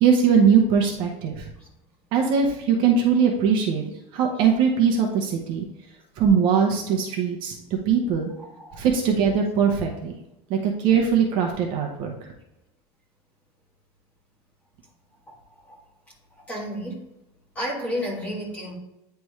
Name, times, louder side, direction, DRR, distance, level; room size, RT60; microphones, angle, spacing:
voice 1, 0.0-1.5 2.1-3.8 4.1-5.6 6.2-7.5 7.9-8.3 8.8-10.1 10.5-12.1, right 6 dB, 40° right, 0 dB, 0.9 m, -21 dB
voice 2, 8.4-8.8 15.3-15.4 15.6-15.8 16.3-17.0 17.5-18.8, equal, 10° left, -3 dB, 1.5 m, -32 dB
9.3 x 3.4 x 3.2 m, 0.92 s
cardioid pair, 180°, 13 cm